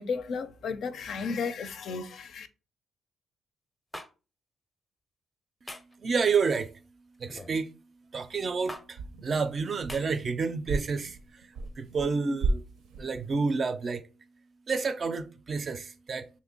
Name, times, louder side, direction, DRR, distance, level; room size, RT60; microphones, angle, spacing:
voice 1, 0.0-2.5, left 5 dB, 65° left, 0.4 m, -33 dB
sound 1, 3.9-4.1 5.7-6.0 7.3-7.6 8.7-8.8 9.9-10.0, left 1 dB, 15° left, 0.5 m, -41 dB
voice 2, 5.6-12.6 13.0-14.1 14.7-16.3, right 5 dB, 45° right, 0.4 m, -30 dB
sound 2, 8.2-8.6 8.9-10.3 10.7-12.1 12.4-13.3, right 3 dB, 90° right, 0.6 m, -34 dB
3.0 x 2.6 x 3.8 m
cardioid pair, 90°, 0 cm